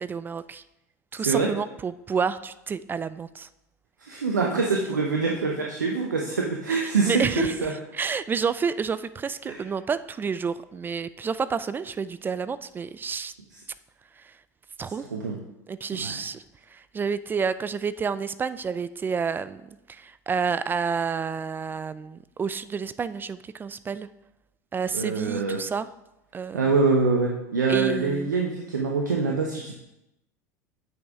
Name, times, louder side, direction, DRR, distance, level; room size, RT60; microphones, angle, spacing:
voice 1, 0.0-0.6 1.1-3.5 6.7-7.5 7.9-13.3 14.8-15.0 15.7-16.4 16.7-19.6 19.9-24.1 24.7-25.9 26.3-26.6 27.7-28.3, right 6 dB, 20° right, 15 dB, 0.3 m, -29 dB
voice 2, 1.2-1.5 4.0-7.7 9.4-9.6 15.0-15.4 15.9-16.2 24.9-25.6 26.5-29.7, right 4 dB, 90° right, 0 dB, 0.8 m, -25 dB
7.8 x 5.4 x 4.8 m, 0.91 s
hypercardioid pair, 80°, 9 cm